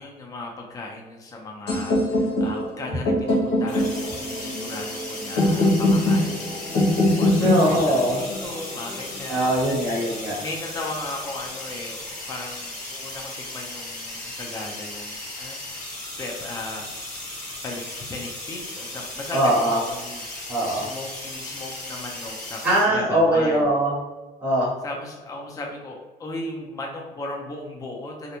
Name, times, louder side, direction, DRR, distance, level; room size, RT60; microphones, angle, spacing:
voice 1, 0.0-9.5 10.4-15.6 16.2-16.9 17.4-23.7 24.8-28.4, left 2 dB, 20° left, 0 dB, 0.4 m, -36 dB
sound 1, 1.7-9.6, left 1 dB, 85° left, 0.9 m, -23 dB
sound 2, 3.7-22.9, left 2 dB, 50° left, 1.4 m, -36 dB
voice 2, 7.4-8.2 9.3-10.4 19.3-19.8 20.5-20.8 22.6-23.9 24.4-24.7, right 1 dB, 10° right, -8 dB, 1.1 m, -21 dB
2.5 x 2.1 x 2.9 m, 1.2 s
cardioid pair, 110°, 17 cm